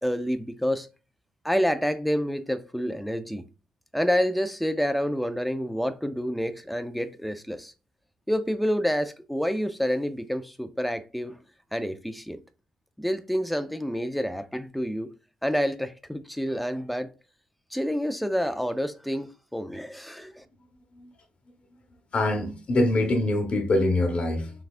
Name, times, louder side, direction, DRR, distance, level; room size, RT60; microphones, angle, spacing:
voice 1, 0.0-0.9 1.4-3.4 3.9-7.7 8.3-11.4 11.7-12.4 13.0-15.1 15.4-17.1 17.7-20.4, equal, ahead, 0.4 m, -28 dB
voice 2, 22.1-24.5, left 2 dB, 40° left, 1.2 m, -24 dB
5.9 x 3.4 x 2.5 m
cardioid pair, 145°, 3 cm